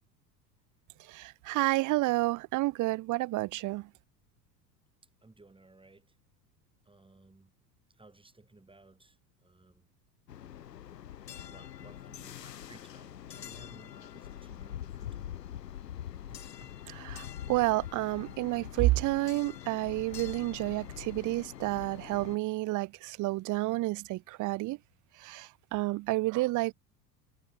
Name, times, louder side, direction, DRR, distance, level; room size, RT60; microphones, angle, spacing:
voice 1, 1.1-3.9 17.0-24.8 25.2-26.7, right 19 dB, 40° right, 1.0 m, -30 dB
voice 2, 5.2-6.2 6.8-7.5 8.0-9.9 11.1-15.4 16.2-16.8, right 2 dB, 10° right, 7.7 m, -58 dB
sound 1, 10.3-22.4, left 10 dB, 75° left, 7.6 m, -44 dB
figure-of-eight pair, 75°, 49 cm